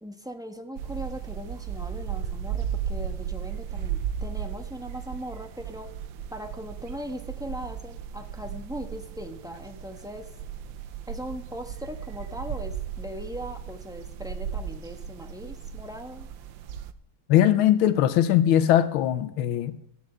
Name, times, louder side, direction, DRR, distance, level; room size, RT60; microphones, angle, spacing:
voice 1, 0.0-5.9 6.3-10.3 11.1-16.3, equal, 5° right, 0.6 m, -39 dB
Yanga Station Atmos, 0.8-16.9, right 8 dB, 75° right, 1.4 m, -35 dB
voice 2, 17.3-19.8, left 11 dB, 85° left, 1.6 m, -20 dB
15.0 x 7.1 x 9.0 m
omnidirectional pair, 2.2 m